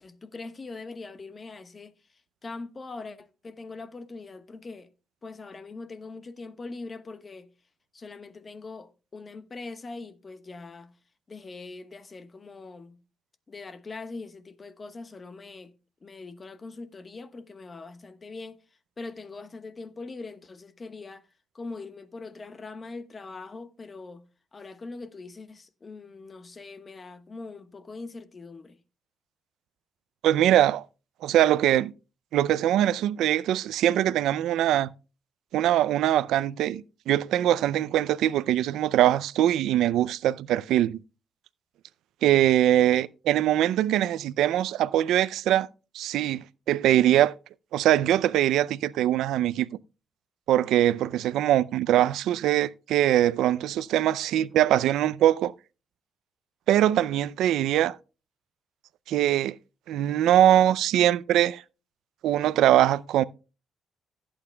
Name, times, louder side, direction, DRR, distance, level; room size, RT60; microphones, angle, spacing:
voice 1, 0.0-1.9 2.4-4.9 5.2-7.5 7.9-10.9 11.3-13.0 13.5-15.7 16.0-18.6 19.0-21.3 21.5-24.2 24.5-28.8, left 3 dB, 35° left, 1.1 m, -42 dB
voice 2, 30.2-30.8 31.2-31.9 32.3-34.9 35.5-41.0 42.2-45.7 45.9-47.3 47.7-49.7 50.5-55.5 56.7-58.0 59.1-59.6 59.9-61.6 62.2-63.2, right 12 dB, 85° right, 0.4 m, -22 dB
16.5 x 8.8 x 2.2 m
cardioid pair, 90°, 0 cm